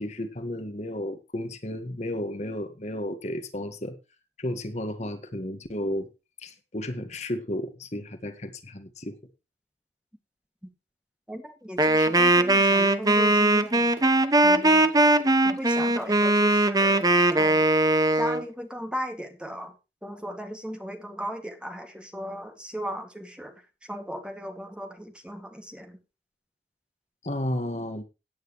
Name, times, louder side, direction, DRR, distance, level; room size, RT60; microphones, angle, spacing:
voice 1, 0.0-3.9 4.4-6.1 6.4-9.2 12.0-12.1 27.2-28.0, left 1 dB, 40° left, 8 dB, 1.6 m, -33 dB
voice 2, 11.3-13.9 14.4-14.9 15.4-17.1 17.3-17.6 18.1-19.7 20.0-23.5 23.9-26.0, equal, 5° right, 5 dB, 2.2 m, -36 dB
Wind instrument woodwind instrument, 11.8-18.4, right 2 dB, 20° right, 1.0 m, -20 dB
17.0 x 9.3 x 3.2 m, 0.28 s
head